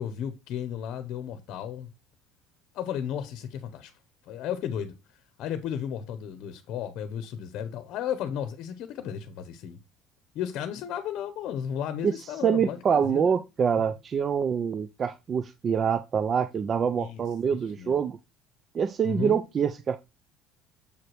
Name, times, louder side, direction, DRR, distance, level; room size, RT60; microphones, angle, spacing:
voice 1, 0.0-1.9 2.7-3.9 4.2-9.8 10.3-13.4 16.9-18.0 19.0-19.4, left 9 dB, 60° left, 0.8 m, -34 dB
voice 2, 12.4-18.2 18.7-20.0, right 7 dB, 35° right, 0.4 m, -25 dB
7.0 x 4.8 x 3.0 m
cardioid pair, 125°, 0 cm